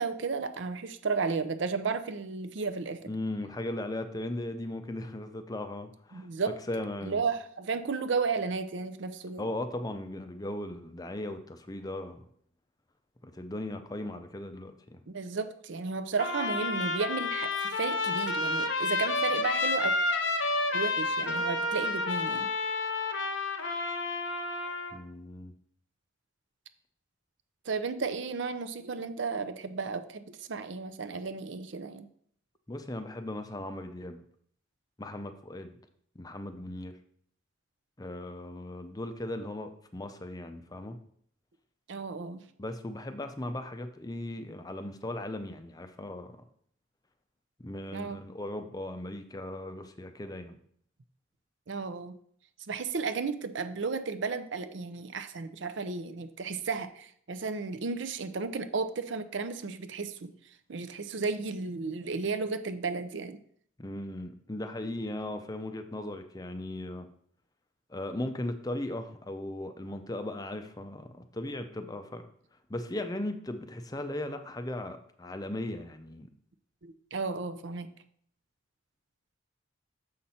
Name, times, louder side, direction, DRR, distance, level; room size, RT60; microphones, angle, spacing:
voice 1, 0.0-3.0 6.1-6.5 7.0-9.5 15.1-19.9 20.7-22.5 27.7-32.1 41.9-42.4 47.9-48.2 51.7-52.2 52.7-60.3 60.7-63.4 76.8-77.9, right 4 dB, 60° right, 11 dB, 0.5 m, -33 dB
voice 2, 3.1-6.3 6.7-7.2 9.4-12.3 13.2-15.0 24.9-25.5 32.7-34.2 35.0-35.8 36.2-36.9 38.0-41.0 42.6-46.4 47.6-50.6 63.8-67.1 67.9-72.3 72.7-76.3, left 1 dB, 20° left, 8 dB, 0.5 m, -37 dB
Trumpet, 16.2-25.0, left 2 dB, 65° left, 0.8 m, -30 dB
6.5 x 5.7 x 4.2 m, 0.64 s
head